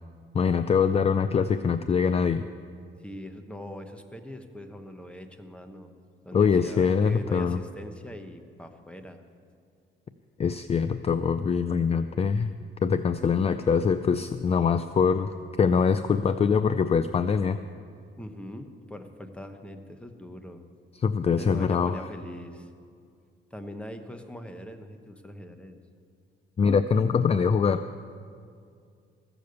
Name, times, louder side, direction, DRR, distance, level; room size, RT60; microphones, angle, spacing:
voice 1, 0.3-2.4 6.3-7.6 10.4-12.5 12.8-15.3 15.6-17.6 21.0-22.0 26.6-27.8, left 6 dB, 30° left, 11 dB, 0.4 m, -23 dB
voice 2, 3.0-5.9 6.2-9.2 18.2-20.6 21.4-22.7 23.5-25.8, left 1 dB, 5° left, 7 dB, 1.1 m, -41 dB
14.5 x 7.0 x 8.0 m, 2.3 s
cardioid pair, 90°, 20 cm